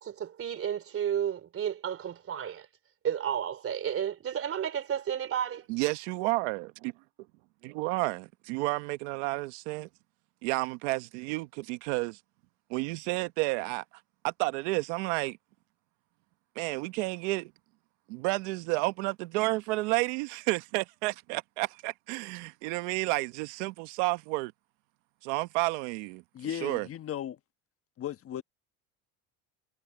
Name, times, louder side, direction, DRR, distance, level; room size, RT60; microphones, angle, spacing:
voice 1, 0.0-2.7 3.0-5.7, right 9 dB, 40° right, 3.4 m, -32 dB
voice 2, 5.7-6.7 7.6-9.9 10.4-12.2 12.7-13.8 14.2-15.4 16.6-17.5 18.1-24.5 25.2-26.2 26.6-26.9, right 22 dB, 90° right, 1.0 m, -31 dB
voice 3, 26.3-27.4 28.0-28.4, left 10 dB, 40° left, 1.3 m, -36 dB
supercardioid pair, 110°, 34 cm